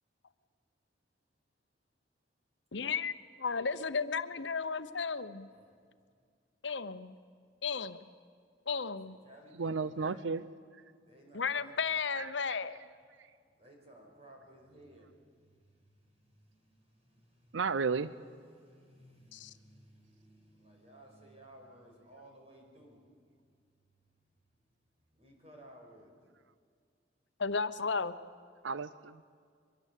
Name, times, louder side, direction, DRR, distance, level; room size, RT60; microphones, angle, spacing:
voice 1, 2.7-5.5 6.6-7.1 7.6-8.1 8.7-9.2 11.3-12.8 19.3-19.5 27.4-28.1, left 5 dB, 75° left, 12 dB, 0.9 m, -34 dB
voice 2, 9.1-10.2 11.0-11.7 13.6-15.1 16.5-16.9 17.3-17.6 18.5-23.0 25.1-26.1, right 1 dB, 35° right, 1 dB, 5.7 m, -57 dB
voice 3, 9.6-10.4 12.2-12.3 17.5-18.1 28.6-29.1, right 5 dB, 90° right, 16 dB, 0.6 m, -33 dB
24.0 x 22.0 x 8.4 m, 2.1 s
head